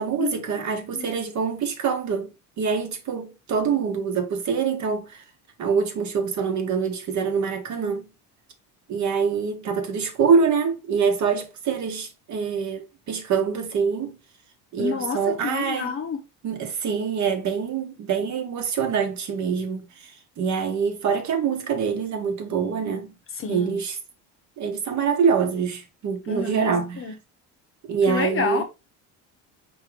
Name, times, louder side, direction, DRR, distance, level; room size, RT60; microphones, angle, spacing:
voice 1, 0.0-2.3 2.6-5.2 5.6-8.0 8.9-14.2 14.7-16.0 16.4-23.1 23.5-24.0 24.6-27.0 27.8-28.6, right 6 dB, 50° right, 1.1 m, -25 dB
voice 2, 14.8-16.2 23.4-23.8 26.3-26.7 27.0-27.1 28.1-28.6, left 5 dB, 35° left, 0.8 m, -28 dB
4.8 x 2.9 x 3.2 m
cardioid pair, 130°, 37 cm